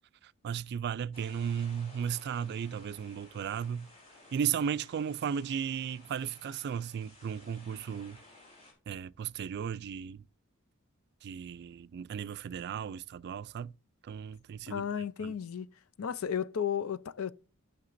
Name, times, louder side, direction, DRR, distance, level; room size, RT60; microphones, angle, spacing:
voice 1, 0.4-3.9 4.3-8.2 8.9-10.2 11.2-13.7 14.0-14.8 15.2-15.3, right 8 dB, 50° right, 0.3 m, -35 dB
sound 1, 1.1-8.7, left 2 dB, 30° left, 3.6 m, -56 dB
voice 2, 14.7-15.7 16.0-17.3, left 8 dB, 75° left, 0.5 m, -33 dB
14.5 x 5.8 x 2.6 m
head